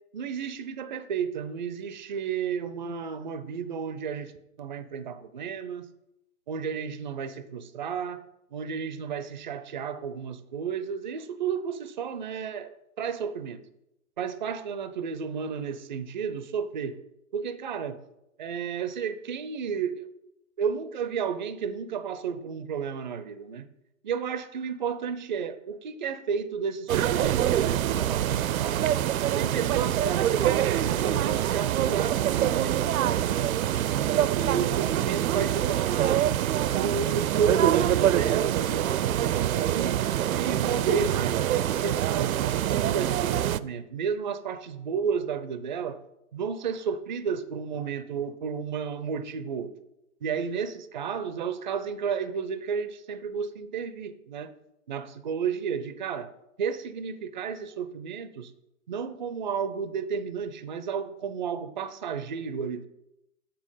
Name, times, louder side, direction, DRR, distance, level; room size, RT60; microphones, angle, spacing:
voice 1, 0.1-4.3 4.6-5.9 6.5-8.2 8.5-13.6 14.2-17.0 17.3-18.0 18.4-20.0 20.6-23.7 24.0-28.9 29.3-33.5 34.4-36.3 36.7-40.1 40.4-46.0 46.3-49.7 50.2-54.5 54.9-56.3 56.6-58.5 58.9-62.9, right 6 dB, 35° right, 0.4 m, -32 dB
sound 1, 26.9-43.6, right 11 dB, 90° right, 0.5 m, -25 dB
6.9 x 5.2 x 5.4 m
hypercardioid pair, 160°, 41 cm